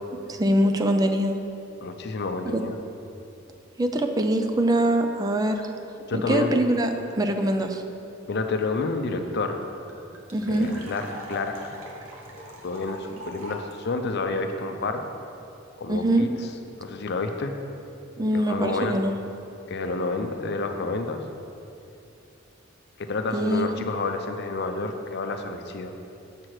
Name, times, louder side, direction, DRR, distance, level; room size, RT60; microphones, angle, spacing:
voice 1, 0.3-1.4 2.5-2.6 3.8-5.7 6.1-6.9 7.1-7.8 10.3-10.7 15.9-16.3 18.2-19.1 23.3-23.7, right 1 dB, 20° right, 5 dB, 0.4 m, -23 dB
voice 2, 1.8-2.7 6.1-6.6 8.3-9.6 10.5-11.8 12.4-15.1 15.8-16.5 16.8-17.5 18.3-19.0 19.7-21.2 23.0-25.9, left 3 dB, 55° left, 6 dB, 0.6 m, -29 dB
sound 1, 9.0-9.1 9.2-9.3 9.6-13.7, equal, 75° right, 1.1 m, -41 dB
7.5 x 6.0 x 4.8 m, 2.7 s
head